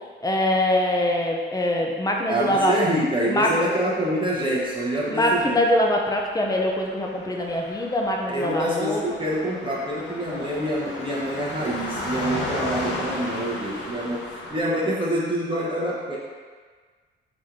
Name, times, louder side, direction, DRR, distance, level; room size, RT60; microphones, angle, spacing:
voice 1, 0.2-2.7 3.3-3.5 5.1-9.2, left 1 dB, 20° left, 0 dB, 0.6 m, -23 dB
voice 2, 2.3-5.6 8.3-16.2, right 1 dB, 25° right, -6 dB, 0.9 m, -26 dB
Car passing by, 4.7-14.6, left 2 dB, 65° left, 0.9 m, -35 dB
4.2 x 2.9 x 3.7 m, 1.5 s
cardioid pair, 90°, 20 cm